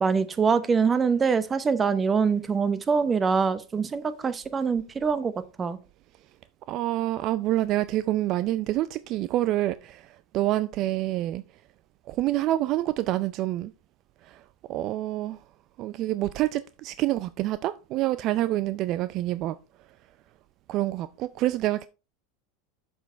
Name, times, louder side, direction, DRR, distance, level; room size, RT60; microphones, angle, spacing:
voice 1, 0.0-5.3 5.6-5.8, right 5 dB, 25° right, 0.9 m, -24 dB
voice 2, 6.7-11.4 12.1-13.7 14.2-14.4 14.7-15.4 15.8-19.6 20.7-21.9, right 15 dB, 50° right, 0.4 m, -27 dB
6.9 x 6.3 x 4.4 m
hypercardioid pair, 100°, 0 cm